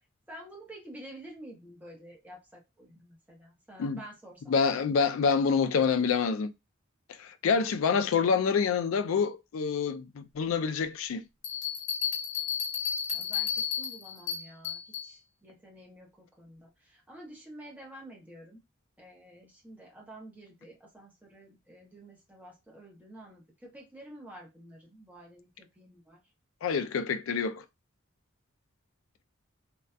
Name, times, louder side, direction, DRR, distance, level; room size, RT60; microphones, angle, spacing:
voice 1, 0.3-4.8 13.1-18.6 19.0-26.2, right 1 dB, 10° right, 0.8 m, -50 dB
voice 2, 4.5-6.5 7.2-11.2 26.6-27.6, left 6 dB, 80° left, 0.4 m, -27 dB
Bell, 11.4-15.1, left 8 dB, 55° left, 0.8 m, -32 dB
2.6 x 2.2 x 2.2 m
head